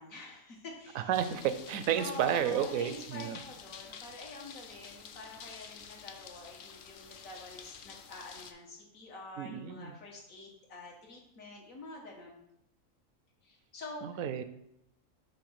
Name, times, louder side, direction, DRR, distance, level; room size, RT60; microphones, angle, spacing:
voice 1, 0.0-1.1 2.0-12.4 13.4-14.3, left 2 dB, 85° left, -1 dB, 1.8 m, -47 dB
voice 2, 1.0-3.4 9.4-10.0 14.0-14.4, right 9 dB, 85° right, 11 dB, 1.0 m, -31 dB
sound 1, 1.1-8.5, left 7 dB, 65° left, 0.5 m, -49 dB
5.8 x 3.4 x 5.7 m, 0.78 s
omnidirectional pair, 1.4 m